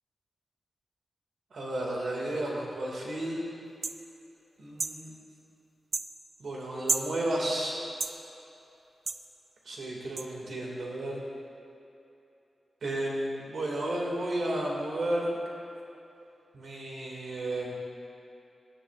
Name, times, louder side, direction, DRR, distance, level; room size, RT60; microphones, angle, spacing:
voice 1, 1.5-3.4 4.6-5.1 6.4-7.8 9.7-11.2 12.8-15.4 16.5-17.8, right 1 dB, 65° right, -3 dB, 2.0 m, -32 dB
sound 1, 3.8-4.0 4.8-5.0 5.9-6.1 6.9-7.1 8.0-8.2 9.1-9.2 10.2-10.3, right 4 dB, 40° right, 0.3 m, -30 dB
17.0 x 10.0 x 2.4 m, 2.9 s
wide cardioid pair, 180°, 0 cm